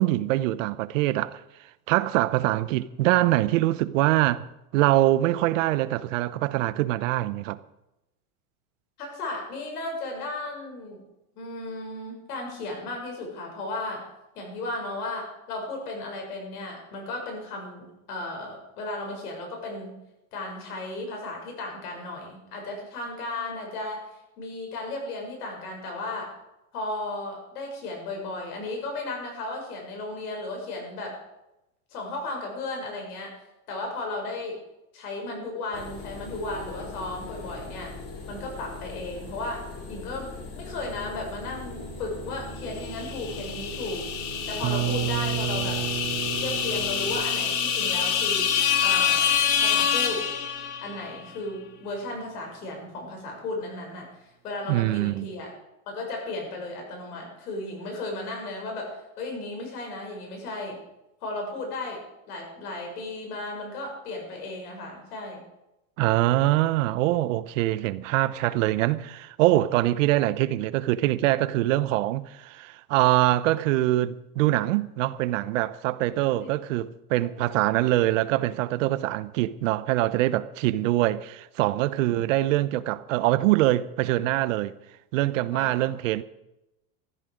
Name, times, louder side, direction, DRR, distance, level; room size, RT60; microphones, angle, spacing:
voice 1, 0.0-1.4 1.9-4.5 4.7-7.6 54.7-55.3 66.0-84.7 85.1-86.2, right 16 dB, 60° right, 0.8 m, -24 dB
voice 2, 9.0-11.0 11.4-14.0 14.4-20.0 20.3-24.0 24.4-26.3 26.7-31.2 31.9-33.3 33.7-34.6 34.9-37.9 38.3-40.3 40.5-44.0 44.5-45.8 46.4-48.5 48.8-50.2 50.8-54.1 54.4-55.5 55.9-60.8 61.2-62.0 62.3-65.4 76.4-76.5 77.2-77.3 81.9-82.2 85.5-85.9, left 2 dB, 85° left, 6.9 m, -35 dB
sound 1, 35.7-47.2, left 2 dB, 35° left, 3.0 m, -40 dB
sound 2, 43.0-51.0, left 8 dB, 55° left, 1.9 m, -26 dB
sound 3, 44.6-50.4, right 12 dB, 20° right, 0.6 m, -33 dB
15.0 x 13.5 x 5.1 m
supercardioid pair, 155°, 44 cm